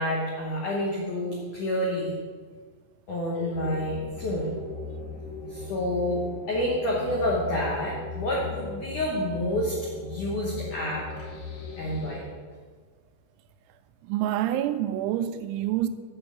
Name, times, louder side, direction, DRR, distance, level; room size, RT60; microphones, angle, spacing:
voice 1, 0.0-2.1 3.1-4.6 5.5-11.1 11.8-12.3, left 1 dB, 75° left, 1.8 m, -28 dB
sound 1, 3.5-12.2, left 3 dB, 55° left, 3.7 m, -38 dB
voice 2, 14.0-15.9, right 12 dB, 85° right, 2.9 m, -27 dB
8.7 x 4.7 x 7.1 m
omnidirectional pair, 5.4 m